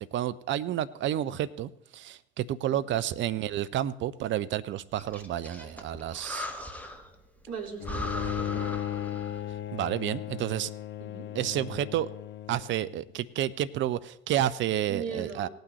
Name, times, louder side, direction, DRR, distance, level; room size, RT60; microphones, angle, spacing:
voice 1, 0.0-6.5 9.7-10.7 11.4-12.1 12.5-15.5, right 12 dB, 40° right, 15 dB, 0.5 m, -30 dB
Breathing, 5.0-7.1 7.5-7.6 7.8-9.5, left 1 dB, 5° left, 1.5 m, -38 dB
voice 2, 7.5-8.7 11.0-11.3 14.9-15.5, right 5 dB, 55° right, 2 dB, 2.7 m, -39 dB
Bowed string instrument, 7.8-13.0, left 11 dB, 40° left, 0.6 m, -36 dB
18.0 x 9.1 x 3.1 m, 0.76 s
figure-of-eight pair, 55°, 30 cm